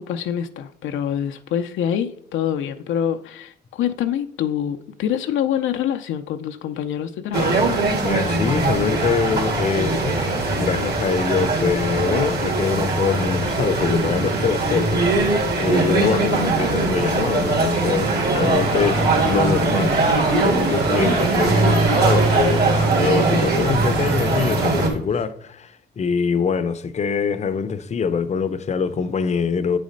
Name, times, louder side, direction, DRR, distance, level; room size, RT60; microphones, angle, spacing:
voice 1, 0.0-7.6, left 9 dB, 75° left, 0.6 m, -25 dB
sound 1, 7.3-24.9, right 2 dB, 55° right, 2.2 m, -21 dB
voice 2, 8.0-10.2 10.6-15.0 15.6-29.8, left 5 dB, 35° left, 0.6 m, -24 dB
sound 2, 15.7-25.0, right 3 dB, 70° right, 1.8 m, -29 dB
sound 3, 17.8-25.0, right 2 dB, 85° right, 1.5 m, -30 dB
8.4 x 4.2 x 5.1 m
cardioid pair, 90°, 20 cm